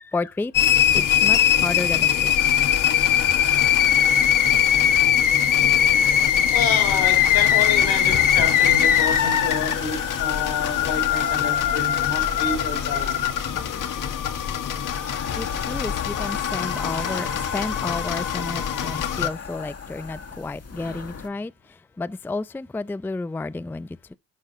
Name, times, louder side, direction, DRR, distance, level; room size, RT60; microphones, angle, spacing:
voice 1, 0.1-0.5 0.9-2.3 15.4-21.5 22.0-23.9, left 3 dB, 5° left, 0.4 m, -31 dB
sound 1, 0.5-19.3, left 9 dB, 65° left, 1.5 m, -21 dB
sound 2, 2.4-21.3, left 6 dB, 45° left, 1.8 m, -36 dB
voice 2, 6.5-13.3, left 5 dB, 80° left, 4.8 m, -29 dB
11.5 x 5.4 x 5.5 m
supercardioid pair, 70°, 35 cm